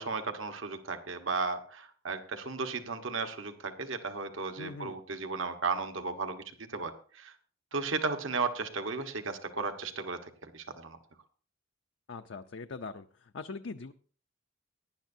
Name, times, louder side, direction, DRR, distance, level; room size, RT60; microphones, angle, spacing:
voice 1, 0.0-6.4 6.7-7.3 7.7-11.0, right 4 dB, 70° right, 7 dB, 1.3 m, -35 dB
voice 2, 4.6-5.0 12.1-13.1 13.3-13.9, left 4 dB, 65° left, 7 dB, 0.6 m, -41 dB
18.0 x 11.0 x 2.7 m, 0.42 s
head